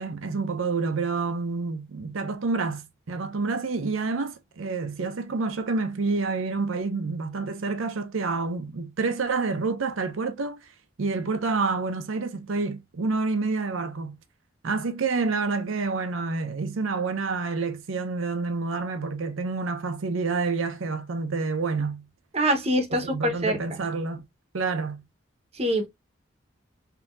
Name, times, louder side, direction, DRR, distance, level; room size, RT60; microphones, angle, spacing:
voice 1, 0.0-10.6 11.0-14.2 14.6-22.1 22.9-24.3 24.5-25.0, right 4 dB, 90° right, 0.6 m, -28 dB
voice 2, 22.3-23.6 25.5-25.9, equal, 30° right, 0.8 m, -24 dB
3.6 x 2.8 x 2.4 m
head